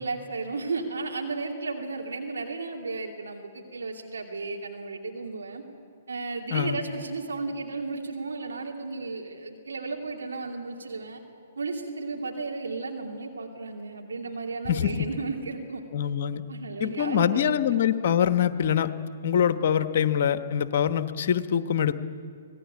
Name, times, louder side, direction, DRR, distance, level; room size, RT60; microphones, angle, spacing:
voice 1, 0.0-5.6 6.1-11.2 11.6-15.8 16.5-17.4, right 3 dB, 70° right, 1 dB, 2.7 m, -34 dB
voice 2, 14.7-15.1 15.9-16.4 16.8-18.9 19.2-21.9, left 9 dB, 50° left, 11 dB, 1.1 m, -24 dB
25.5 x 18.5 x 8.4 m, 2.3 s
figure-of-eight pair, 120°, 0 cm